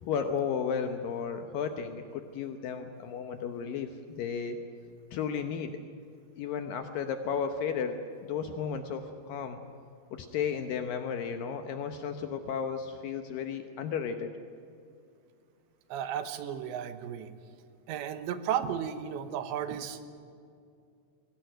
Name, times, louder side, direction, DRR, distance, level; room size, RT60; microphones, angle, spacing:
voice 1, 0.0-4.6 5.1-5.8 6.4-9.6 10.1-14.3, left 6 dB, 70° left, 7 dB, 2.2 m, -34 dB
voice 2, 15.9-17.3 17.9-20.1, right 9 dB, 85° right, 10 dB, 3.4 m, -34 dB
22.0 x 18.0 x 9.2 m, 2.4 s
omnidirectional pair, 5.0 m